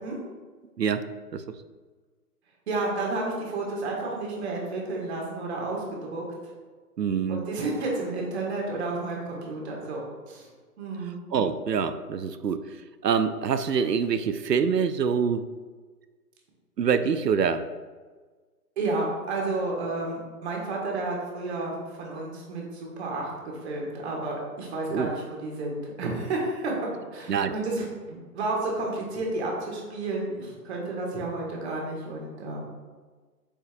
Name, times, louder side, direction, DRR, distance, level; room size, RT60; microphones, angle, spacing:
voice 1, 0.8-1.4 7.0-7.4 11.3-12.6 13.0-15.4 16.8-17.7 24.9-25.1 27.3-27.5, right 6 dB, 85° right, 11 dB, 0.6 m, -25 dB
voice 2, 2.7-6.5 7.3-10.0 10.3-10.5 10.8-11.2 18.8-32.7, right 2 dB, 40° right, -2 dB, 1.9 m, -31 dB
8.6 x 5.1 x 2.5 m, 1.4 s
figure-of-eight pair, 140°, 47 cm